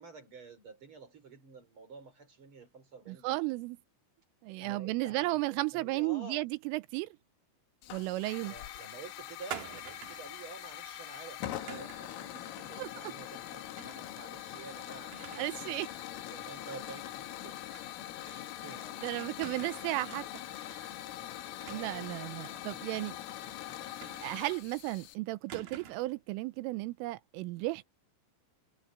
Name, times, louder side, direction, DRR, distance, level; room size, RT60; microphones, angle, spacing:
voice 1, 0.0-3.4 4.6-6.4 8.4-17.6 18.2-19.3 21.6-22.6, right 4 dB, 30° right, 3.7 m, -50 dB
voice 2, 3.1-3.8 4.4-7.1 7.9-8.5 12.8-13.1 15.4-15.9 19.0-20.3 20.6-20.8 21.7-23.2 24.2-27.8, right 20 dB, 85° right, 3.3 m, -34 dB
Hiss / Fire, 7.8-25.2, left 13 dB, 85° left, 4.2 m, -43 dB
sound 1, 9.5-10.3 11.7-12.1 13.8-14.1 14.5-14.6 15.1-15.7 16.0-16.1 17.7-17.9 18.3-18.4 19.4-20.0 21.6-22.2 24.0-24.6 25.5-26.2, right 9 dB, 55° right, 2.8 m, -46 dB
omnidirectional pair, 5.7 m